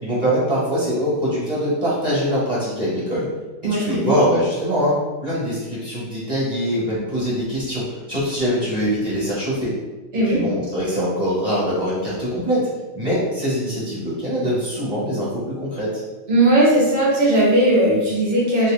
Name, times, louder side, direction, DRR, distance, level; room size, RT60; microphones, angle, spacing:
voice 1, 0.0-3.3 3.6-9.7 10.2-12.7 13.0-16.0, equal, 35° right, -8 dB, 1.6 m, -23 dB
voice 2, 3.6-4.1 10.1-10.4 16.3-18.7, right 1 dB, 65° right, -5 dB, 1.3 m, -17 dB
3.2 x 2.9 x 3.5 m, 1.2 s
omnidirectional pair, 1.1 m